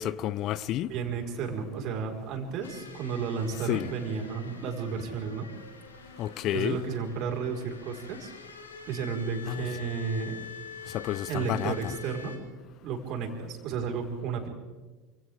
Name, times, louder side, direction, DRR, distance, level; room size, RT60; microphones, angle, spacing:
voice 1, 0.0-0.9 3.7-3.9 6.2-6.8 9.5-9.6 10.9-11.9, left 13 dB, 50° left, 0.6 m, -30 dB
voice 2, 0.9-5.5 6.5-8.3 8.9-10.4 11.3-12.4 12.8-14.5, right 6 dB, 50° right, 4.7 m, -33 dB
sound 1, 2.6-12.4, left 6 dB, 85° left, 2.8 m, -46 dB
28.5 x 26.5 x 3.6 m
figure-of-eight pair, 75°, 0 cm